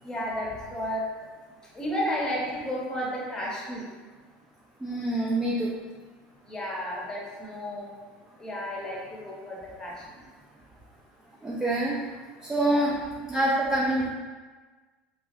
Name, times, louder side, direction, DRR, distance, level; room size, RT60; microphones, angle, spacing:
voice 1, 0.0-1.1 1.7-3.9 6.4-7.9 8.4-10.0 12.7-12.8, equal, 15° left, -5 dB, 0.9 m, -32 dB
voice 2, 4.8-5.7 11.4-12.0 12.5-13.0 13.3-14.1, right 1 dB, 10° right, -5 dB, 0.4 m, -25 dB
3.0 x 2.5 x 2.6 m, 1.4 s
supercardioid pair, 95°, 5 cm